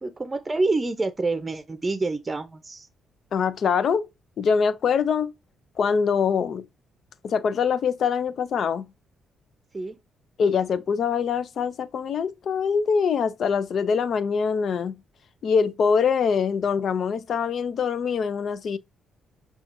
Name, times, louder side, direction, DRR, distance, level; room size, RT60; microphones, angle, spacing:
voice 1, 0.0-2.9 9.7-10.0, right 3 dB, 25° right, 0.6 m, -27 dB
voice 2, 3.3-4.1 4.4-5.3 5.8-6.6 7.2-8.9 10.4-15.0 15.4-18.8, left 6 dB, 60° left, 0.5 m, -24 dB
5.6 x 2.4 x 2.5 m
supercardioid pair, 65°, 0 cm